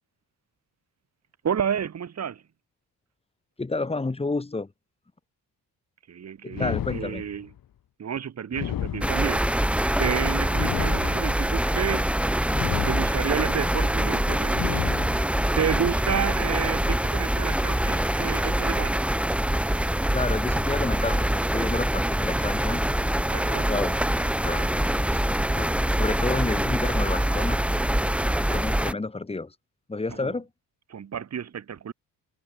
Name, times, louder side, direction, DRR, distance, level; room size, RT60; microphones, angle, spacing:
voice 1, 1.4-2.4 6.1-7.5 8.0-9.5 10.0-12.1 12.8-14.8 15.6-19.0 23.3-23.7 30.2-30.3 30.9-31.9, right 8 dB, 40° right, 4.0 m, -30 dB
voice 2, 3.6-4.7 6.4-7.2 20.1-23.0 23.7-24.0 24.4-25.2 25.5-25.7 26.0-27.6 28.5-29.5 29.9-30.5, left 3 dB, 15° left, 4.1 m, -30 dB
sound 1, 6.5-7.6 8.5-9.6 10.5-11.6 12.5-13.5 14.5-15.5, left 11 dB, 55° left, 2.3 m, -33 dB
sound 2, 9.0-28.9, right 1 dB, 5° right, 2.7 m, -24 dB
cardioid pair, 175°, 41 cm